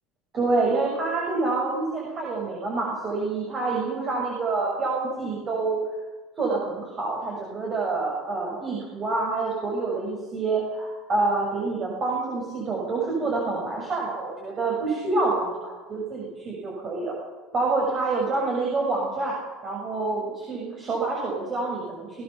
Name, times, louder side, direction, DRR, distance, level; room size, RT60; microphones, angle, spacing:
voice 1, 0.3-5.8 6.4-17.1 17.5-19.4 19.6-22.2, right 3 dB, 30° right, -3 dB, 7.1 m, -27 dB
20.5 x 18.0 x 7.3 m, 1.2 s
cardioid pair, 140°, 0 cm